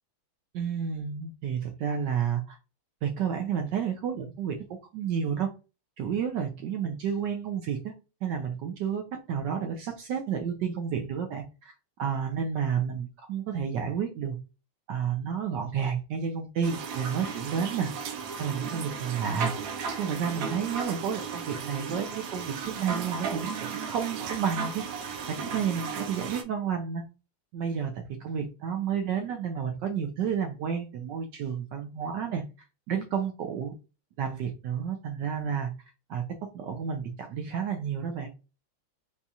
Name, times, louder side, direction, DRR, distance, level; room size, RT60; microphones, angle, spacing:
voice 1, 0.5-2.6 3.0-4.6 4.9-5.5 6.0-7.9 8.2-11.7 12.0-14.4 14.9-17.9 18.4-19.5 20.0-24.8 25.3-27.0 27.5-32.4 32.9-33.7 34.2-35.7 36.1-38.3, right 7 dB, 75° right, 4 dB, 1.0 m, -31 dB
sound 1, 16.6-26.4, right 6 dB, 90° right, 1.5 m, -35 dB
4.1 x 2.4 x 2.6 m, 0.30 s
omnidirectional pair, 2.3 m